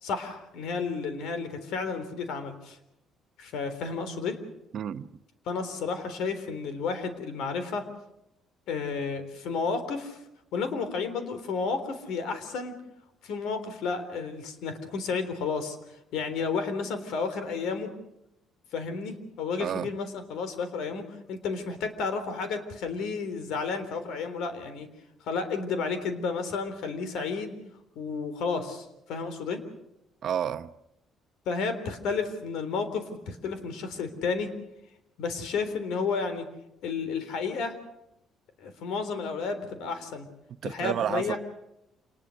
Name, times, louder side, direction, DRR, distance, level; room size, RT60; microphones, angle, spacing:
voice 1, 0.0-2.8 3.4-4.4 5.5-7.9 8.7-10.2 10.5-12.7 13.2-15.8 16.1-17.9 18.7-21.0 21.3-24.9 25.3-27.6 28.0-29.6 31.5-34.5 35.2-36.5 36.8-37.8 38.6-40.3 40.6-41.4, left 5 dB, 80° left, 3.6 m, -32 dB
voice 2, 4.7-5.1 19.6-19.9 30.2-30.7 40.6-41.4, right 9 dB, 50° right, 0.8 m, -30 dB
27.5 x 20.0 x 6.5 m
cardioid pair, 130°, 0 cm